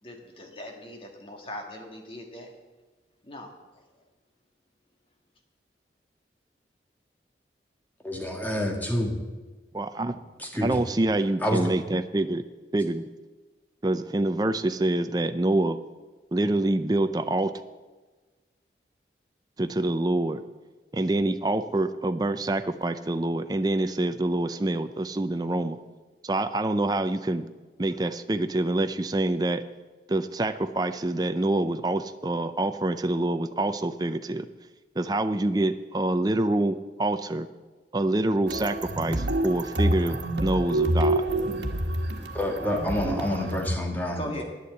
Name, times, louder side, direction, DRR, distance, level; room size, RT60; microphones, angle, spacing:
voice 1, 0.0-2.5 3.2-3.8 44.1-44.4, left 1 dB, 30° left, 2 dB, 1.8 m, -40 dB
voice 2, 8.0-9.1 10.4-10.8 11.4-11.6 42.3-44.4, left 1 dB, 10° left, 1 dB, 1.6 m, -28 dB
voice 3, 9.7-10.1 10.6-12.4 12.7-13.0 13.8-15.8 16.3-17.5 19.6-20.4 20.9-25.8 26.2-27.5 27.8-29.6 30.1-34.5 35.0-37.5 37.9-41.2, right 2 dB, 20° right, 9 dB, 0.5 m, -26 dB
sound 1, 38.5-43.8, right 1 dB, 80° right, 1.3 m, -27 dB
10.5 x 8.2 x 7.9 m, 1.3 s
head